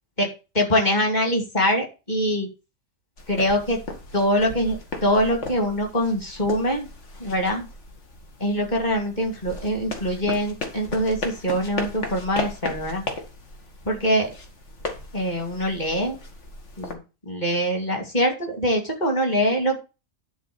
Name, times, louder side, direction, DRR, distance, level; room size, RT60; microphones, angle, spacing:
voice 1, 0.5-2.5 3.3-3.8 4.1-6.9 7.2-7.7 8.4-13.0 13.8-14.3 15.1-16.2 16.8-19.8, equal, 35° left, 2 dB, 2.7 m, -23 dB
sound 1, 3.2-16.9, left 3 dB, 60° left, 2.0 m, -36 dB
11.0 x 4.1 x 7.0 m, 0.30 s
omnidirectional pair, 1.4 m